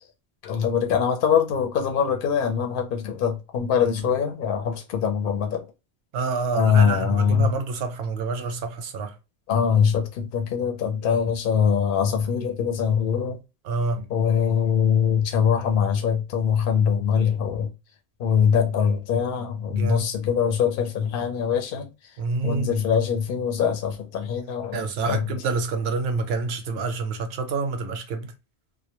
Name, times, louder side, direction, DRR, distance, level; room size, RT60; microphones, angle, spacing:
voice 1, 0.4-5.6 6.5-7.5 9.5-13.4 14.1-17.7 18.2-21.9 22.4-25.3, left 7 dB, 60° left, 0.7 m, -23 dB
voice 2, 6.1-9.2 13.6-14.0 19.7-20.1 22.2-22.7 24.7-28.3, right 4 dB, 70° right, 0.8 m, -27 dB
2.1 x 2.1 x 2.9 m
omnidirectional pair, 1.1 m